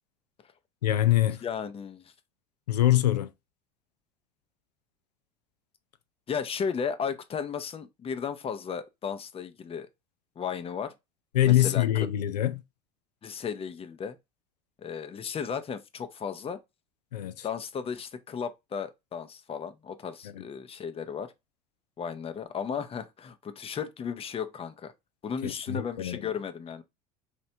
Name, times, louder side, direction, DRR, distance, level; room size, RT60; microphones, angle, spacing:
voice 1, 0.8-1.4 2.7-3.3 11.3-12.6 17.1-17.5 20.3-20.4 25.4-26.2, left 13 dB, 85° left, 0.5 m, -24 dB
voice 2, 1.4-2.0 6.3-9.9 10.4-10.9 11.4-12.1 13.2-14.2 14.8-16.6 17.4-21.3 22.0-24.9 25.2-26.8, left 7 dB, 30° left, 0.7 m, -35 dB
4.4 x 3.2 x 2.7 m
hypercardioid pair, 70°, 20 cm